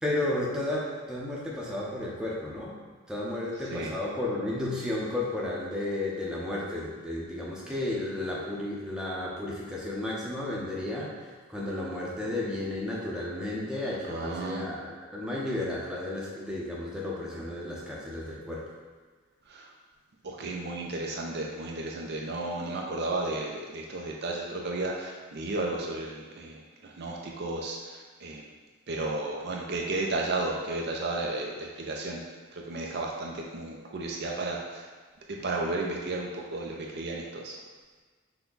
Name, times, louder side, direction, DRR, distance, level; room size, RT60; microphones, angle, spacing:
voice 1, 0.0-2.7 3.1-11.1 11.5-18.7, left 1 dB, 5° right, -5 dB, 0.7 m, -33 dB
voice 2, 14.1-14.7 19.5-19.7 20.2-28.4 28.9-32.2 32.5-34.9 35.3-37.6, right 2 dB, 50° right, -1 dB, 0.5 m, -33 dB
5.8 x 2.2 x 3.9 m, 1.4 s
head